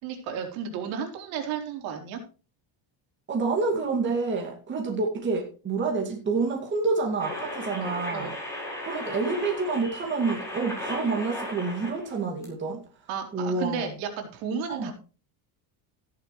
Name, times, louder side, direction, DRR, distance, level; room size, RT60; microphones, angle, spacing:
voice 1, 0.0-2.2 7.8-8.3 13.1-14.9, right 7 dB, 70° right, 4 dB, 3.8 m, -33 dB
voice 2, 3.3-8.3 8.8-12.8 13.3-13.9 14.7-14.9, right 4 dB, 25° right, 0 dB, 2.3 m, -28 dB
sound 1, 7.2-12.1 12.4-12.5, left 1 dB, 5° left, 4.7 m, -36 dB
14.0 x 11.0 x 3.2 m, 0.35 s
cardioid pair, 180°, 48 cm